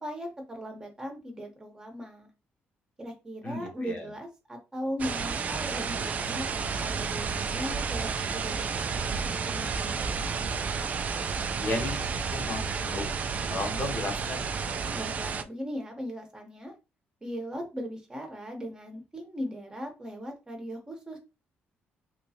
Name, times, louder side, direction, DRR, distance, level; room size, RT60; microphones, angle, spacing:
voice 1, 0.0-2.3 3.0-10.3 14.9-16.7 17.2-21.2, equal, 20° right, 3 dB, 1.0 m, -38 dB
voice 2, 3.4-4.1 11.6-12.0 12.3-13.1 13.5-14.5, left 2 dB, 40° left, 3 dB, 0.9 m, -34 dB
sound 1, 5.0-15.4, right 5 dB, 40° right, 0.3 m, -31 dB
3.2 x 3.0 x 2.8 m, 0.27 s
cardioid pair, 140°, 4 cm